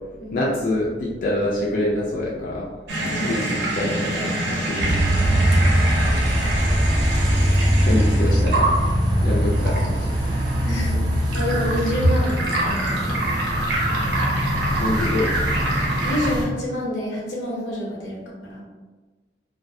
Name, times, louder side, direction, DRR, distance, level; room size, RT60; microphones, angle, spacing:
voice 1, 0.3-2.7 3.2-4.9 7.8-8.7 9.2-10.1 14.8-15.3, left 1 dB, 50° left, -5 dB, 0.3 m, -25 dB
sound 1, 2.9-16.3, right 1 dB, 80° right, 0.6 m, -26 dB
sound 2, 4.8-16.5, equal, 25° right, 0.4 m, -22 dB
voice 2, 10.6-13.2 16.0-18.6, equal, 85° left, -4 dB, 0.7 m, -28 dB
2.3 x 2.0 x 2.6 m, 1.3 s
head